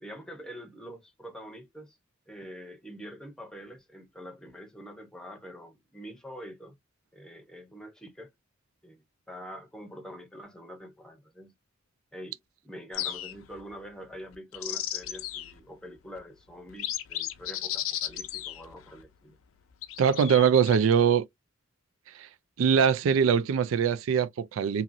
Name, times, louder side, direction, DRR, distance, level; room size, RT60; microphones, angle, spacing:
voice 1, 0.0-2.0 2.3-6.8 7.1-8.3 8.8-11.5 12.1-12.4 12.6-19.4, equal, 5° left, 0.7 m, -45 dB
sound 1, 12.9-13.6 14.3-15.6 16.2-16.3 16.7-19.0 19.8-20.8, left 12 dB, 85° left, 0.4 m, -35 dB
voice 2, 20.0-21.3 22.2-22.3 22.6-24.8, right 7 dB, 80° right, 0.3 m, -22 dB
2.8 x 2.7 x 2.5 m
head